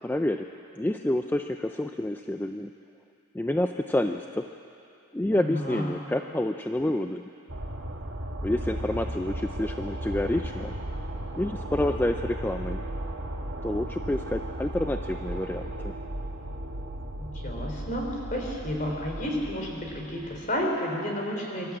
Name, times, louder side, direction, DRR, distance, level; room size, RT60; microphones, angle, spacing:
voice 1, 0.0-0.5 0.8-2.7 3.3-4.4 5.1-7.2 8.4-10.7 11.4-12.8 13.6-15.9, left 1 dB, 10° left, 6 dB, 0.4 m, -28 dB
voice 2, 5.3-5.9 17.2-21.8, equal, 40° left, 0 dB, 3.7 m, -31 dB
sound 1, 7.5-20.5, right 1 dB, 65° right, 1.6 m, -35 dB
24.5 x 12.5 x 8.7 m, 2.8 s
head